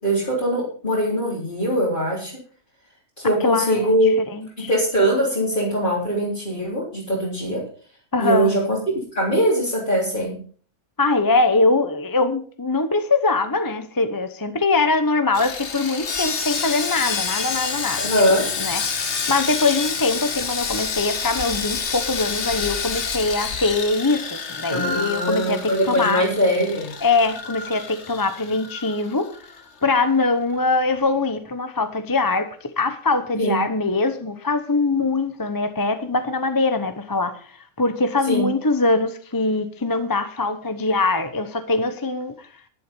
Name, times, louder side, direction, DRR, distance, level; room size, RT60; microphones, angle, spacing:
voice 1, 0.0-2.3 3.2-4.1 4.7-7.6 8.2-10.4 18.0-18.4 24.7-26.9 33.4-33.6 38.3-38.5, equal, 40° left, -6 dB, 3.9 m, -21 dB
voice 2, 3.4-4.7 8.1-8.5 11.0-18.0 18.6-26.2 27.0-29.3 29.8-42.5, left 3 dB, 20° left, 10 dB, 0.8 m, -22 dB
Sawing, 15.3-29.6 29.8-30.0 30.5-30.6, left 5 dB, 60° left, 1.5 m, -28 dB
11.5 x 11.0 x 5.3 m, 0.42 s
omnidirectional pair, 1.3 m